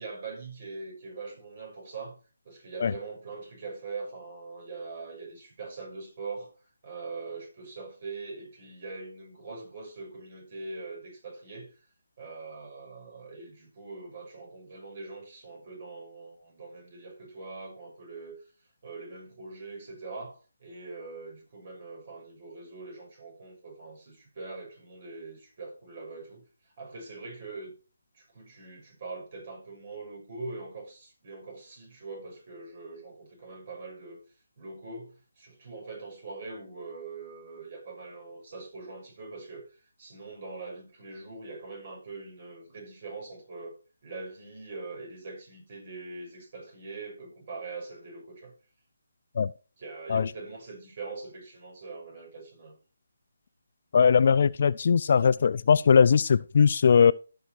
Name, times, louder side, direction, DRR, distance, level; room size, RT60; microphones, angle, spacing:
voice 1, 0.0-6.5 6.8-11.8 12.2-18.4 18.8-27.7 28.1-34.2 34.6-43.8 44.0-48.5 49.8-52.8, right 3 dB, 40° right, 6.3 m, -42 dB
voice 2, 53.9-57.1, left 6 dB, 45° left, 0.5 m, -20 dB
14.0 x 6.3 x 4.5 m
figure-of-eight pair, 160°, 0 cm